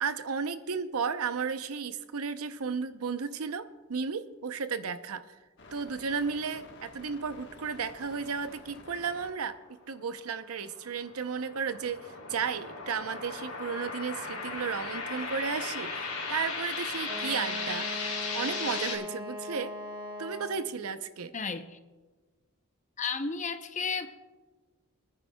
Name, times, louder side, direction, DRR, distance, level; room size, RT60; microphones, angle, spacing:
voice 1, 0.0-5.2 5.7-9.6 9.9-19.7 20.2-21.3, right 5 dB, 85° right, 11 dB, 0.6 m, -34 dB
sound 1, 5.6-9.3 9.6-11.1, left 2 dB, 55° left, 1.2 m, -51 dB
sound 2, 10.6-19.0, left 4 dB, 70° left, 3.3 m, -36 dB
Wind instrument woodwind instrument, 17.0-20.8, left 1 dB, 20° right, 1.0 m, -40 dB
voice 2, 21.3-21.8 23.0-24.1, left 5 dB, 35° left, 8 dB, 0.6 m, -33 dB
26.5 x 9.8 x 2.2 m, 1.3 s
head